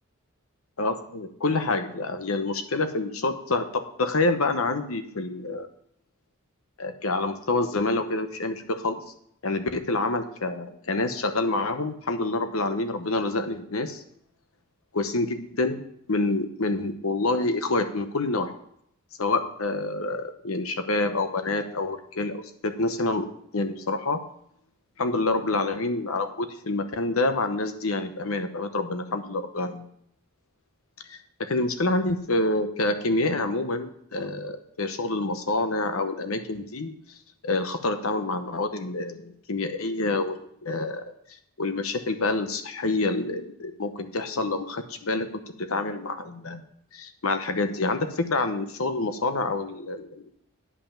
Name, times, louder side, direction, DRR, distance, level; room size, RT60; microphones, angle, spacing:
voice 1, 0.8-5.7 6.8-9.0 9.4-14.0 14.9-15.8 16.1-18.5 19.2-23.3 23.5-24.2 25.0-29.8 31.1-36.9 37.4-41.0 41.6-45.3 45.7-46.6 46.9-50.3, left 2 dB, 70° left, 8 dB, 1.0 m, -27 dB
9.8 x 5.6 x 7.1 m, 0.71 s
head